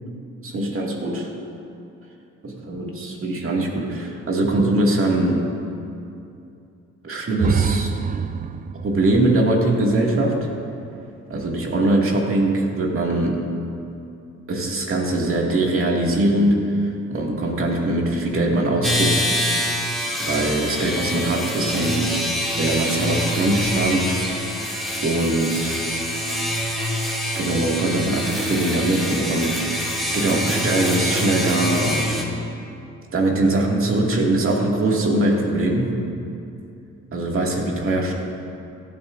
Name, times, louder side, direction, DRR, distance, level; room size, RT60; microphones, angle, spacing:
voice 1, 0.4-1.3 2.4-5.5 7.0-7.9 8.8-10.4 11.3-13.4 14.5-19.7 20.2-22.2 22.5-24.2 25.0-25.8 27.3-32.2 33.1-36.0 37.1-38.1, right 2 dB, 45° right, -1 dB, 2.2 m, -22 dB
sound 1, 7.4-11.2, right 7 dB, 30° right, 0.4 m, -27 dB
sound 2, 18.8-32.2, equal, ahead, 2.4 m, -25 dB
17.0 x 12.0 x 2.6 m, 2.6 s
cardioid pair, 90°, 30 cm